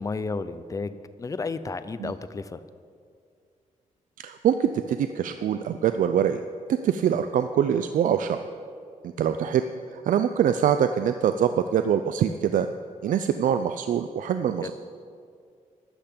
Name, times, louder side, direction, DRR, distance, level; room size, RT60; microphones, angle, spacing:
voice 1, 0.0-2.6 14.6-14.7, left 4 dB, 25° left, 13 dB, 0.5 m, -32 dB
voice 2, 4.2-6.4 6.7-8.4 9.2-9.6 9.9-12.7 13.0-14.7, right 9 dB, 80° right, 9 dB, 0.4 m, -24 dB
13.0 x 5.8 x 8.4 m, 2.2 s
wide cardioid pair, 130°, 14 cm